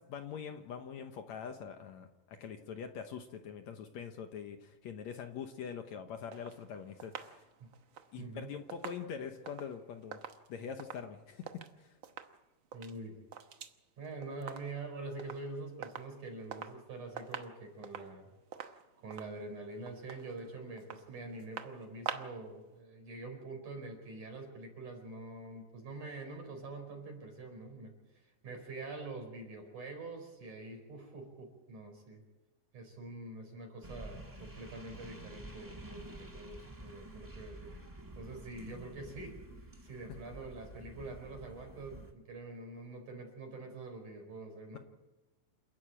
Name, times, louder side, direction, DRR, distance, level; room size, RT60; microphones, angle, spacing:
voice 1, 0.1-7.4 8.1-10.2 10.5-11.9 44.7-44.8, left 7 dB, 65° left, 6 dB, 2.0 m, -44 dB
sound 1, 6.3-11.7 12.0-12.4 12.6-13.8 14.0-14.9 15.2-15.5 15.8-16.8 17.1-22.5 22.8-22.9, right 8 dB, 85° right, 1.0 m, -46 dB
voice 2, 8.2-8.5 12.7-13.2 14.0-18.3 19.0-27.9 28.2-32.2 32.7-37.7 38.2-39.4 39.8-44.8, right 3 dB, 65° right, 3 dB, 6.2 m, -45 dB
sound 2, 33.8-42.1, right 1 dB, 30° right, 0.3 m, -50 dB
28.5 x 11.0 x 8.8 m, 1.1 s
omnidirectional pair, 3.9 m